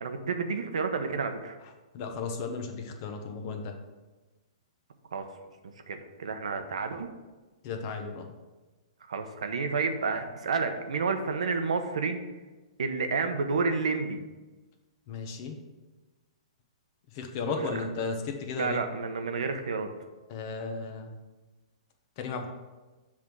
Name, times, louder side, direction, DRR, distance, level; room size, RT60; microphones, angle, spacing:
voice 1, 0.0-1.6 5.1-5.2 5.9-7.1 9.1-12.2 12.8-14.2 17.5-17.7 18.6-19.9, right 4 dB, 85° right, 7 dB, 0.9 m, -30 dB
voice 2, 1.9-3.7 7.6-8.3 15.1-15.6 17.1-18.8 20.3-21.1 22.2-22.5, left 4 dB, 35° left, 4 dB, 0.9 m, -34 dB
7.4 x 3.5 x 6.1 m, 1.2 s
hypercardioid pair, 155°, 3 cm